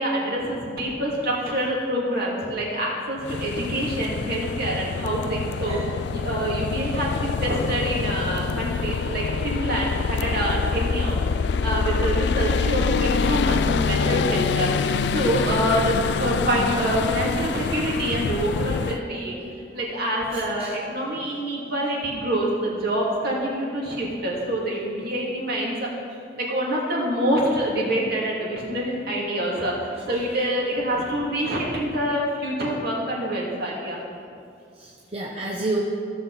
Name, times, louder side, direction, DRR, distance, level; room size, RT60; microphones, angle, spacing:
voice 1, 0.0-5.8 6.1-19.4 19.7-25.9 26.4-34.0, right 1 dB, 55° right, -4 dB, 2.6 m, -26 dB
sound 1, 3.2-19.0, left 5 dB, 65° left, 0.4 m, -25 dB
voice 2, 18.9-19.5 20.6-20.7 34.8-35.8, right 2 dB, 30° right, -2 dB, 0.8 m, -30 dB
16.0 x 7.0 x 4.2 m, 2.5 s
head